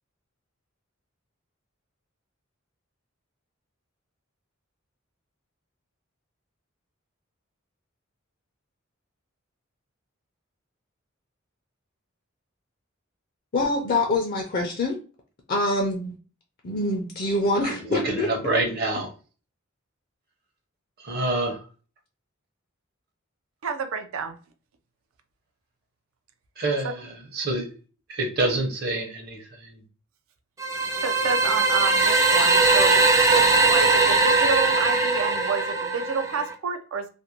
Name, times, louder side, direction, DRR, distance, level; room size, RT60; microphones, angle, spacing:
voice 1, 13.5-15.0 15.5-16.1 16.6-18.3, left 2 dB, 45° left, 0.5 m, -25 dB
voice 2, 17.7-19.1 21.0-21.6 26.6-27.7 28.1-29.8, right 2 dB, 50° right, 0.7 m, -27 dB
voice 3, 23.6-24.4 31.0-37.1, right 5 dB, 80° right, 0.4 m, -29 dB
sound 1, 30.6-36.5, right 3 dB, 15° right, 0.3 m, -20 dB
2.5 x 2.1 x 2.8 m
head